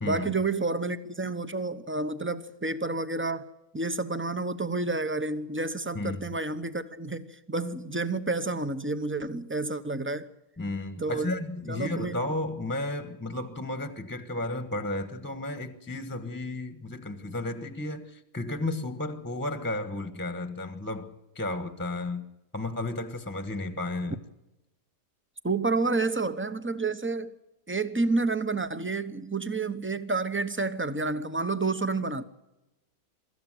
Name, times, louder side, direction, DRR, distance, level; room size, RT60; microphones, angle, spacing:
voice 1, 0.0-3.5 3.7-10.3 11.0-11.3 11.7-12.2 25.4-27.3 27.7-32.2, right 3 dB, 10° right, 0.7 m, -29 dB
voice 2, 5.9-6.3 10.6-21.1 21.3-22.3 22.5-24.2, left 2 dB, 10° left, 1.2 m, -33 dB
24.5 x 14.0 x 7.8 m
omnidirectional pair, 1.5 m